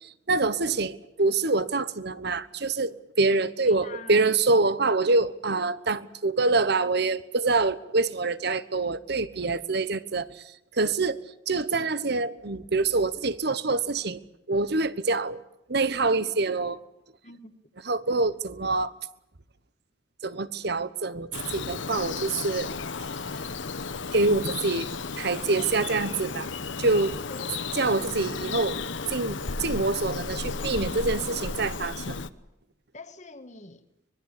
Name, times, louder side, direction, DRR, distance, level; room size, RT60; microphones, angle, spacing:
voice 1, 0.0-11.2 11.5-14.2 14.5-15.4 15.7-16.8 17.9-18.9 20.2-22.7 24.1-24.9 25.2-26.5 26.8-27.2 27.7-28.8 29.1-32.2, right 3 dB, 55° right, 15 dB, 1.1 m, -26 dB
voice 2, 3.7-4.3 17.2-17.7 25.5-26.1 27.3-27.7 32.9-33.8, left 3 dB, 35° left, 9 dB, 1.7 m, -45 dB
Bird vocalization bird call bird song, 21.3-32.3, left 4 dB, 70° left, 1.0 m, -34 dB
24.0 x 22.0 x 8.3 m, 0.82 s
head